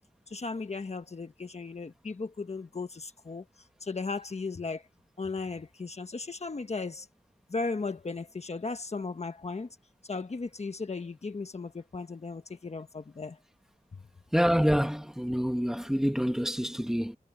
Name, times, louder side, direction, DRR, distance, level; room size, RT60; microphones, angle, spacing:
voice 1, 0.3-4.9 5.2-7.1 7.5-9.8 10.0-13.4 13.9-14.0, left 4 dB, 45° left, 1.2 m, -36 dB
voice 2, 14.3-17.2, equal, 5° right, 1.8 m, -27 dB
wide cardioid pair, 110°, 16 cm